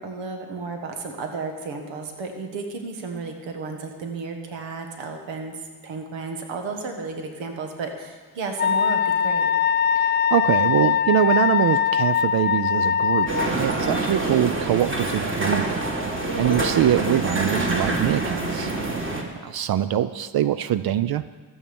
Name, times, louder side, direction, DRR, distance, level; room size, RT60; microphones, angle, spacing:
voice 1, 0.0-9.5, right 4 dB, 85° right, 4 dB, 1.5 m, -33 dB
Wind instrument woodwind instrument, 8.6-13.5, left 8 dB, 25° left, 0.3 m, -21 dB
voice 2, 9.9-13.3 13.6-15.8 16.4-18.7 19.4-21.2, right 11 dB, 55° right, 14 dB, 0.5 m, -23 dB
sound 1, 13.3-19.2, right 2 dB, 25° right, 2.2 m, -26 dB
14.0 x 7.3 x 7.0 m, 1.4 s
cardioid pair, 75°, 44 cm